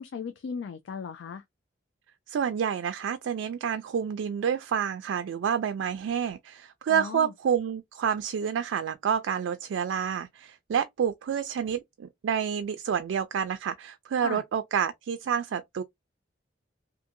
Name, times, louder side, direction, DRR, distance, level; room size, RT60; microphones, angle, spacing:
voice 1, 0.0-1.4 6.9-7.3 14.2-14.4, left 6 dB, 80° left, 0.3 m, -37 dB
voice 2, 2.3-15.8, right 7 dB, 90° right, 0.3 m, -29 dB
2.6 x 2.5 x 2.6 m
head